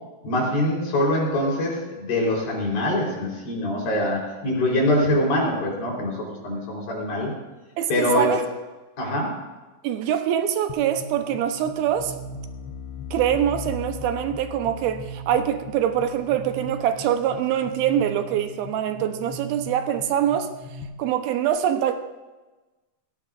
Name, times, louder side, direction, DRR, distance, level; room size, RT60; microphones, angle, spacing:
voice 1, 0.2-7.3 7.9-8.4 9.0-9.4, left 1 dB, 65° left, -2 dB, 5.8 m, -24 dB
voice 2, 7.8-8.4 9.8-12.2 13.1-20.5 21.0-21.9, right 10 dB, 80° right, 7 dB, 2.6 m, -24 dB
sound 1, 10.7-20.8, left 2 dB, 85° left, 3.0 m, -38 dB
17.5 x 16.5 x 2.6 m, 1.2 s
omnidirectional pair, 4.6 m